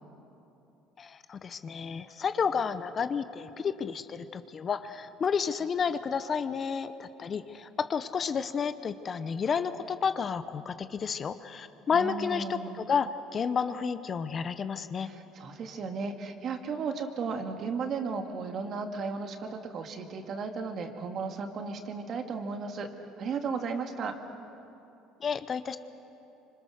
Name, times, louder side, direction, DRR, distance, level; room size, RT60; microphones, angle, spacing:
voice 1, 1.0-15.1 25.2-25.8, left 6 dB, 35° left, 11 dB, 0.9 m, -31 dB
voice 2, 11.9-12.8 15.0-22.9 23.2-24.2, right 5 dB, 50° right, 5 dB, 2.2 m, -35 dB
26.0 x 25.5 x 6.5 m, 2.9 s
cardioid pair, 115°, 0 cm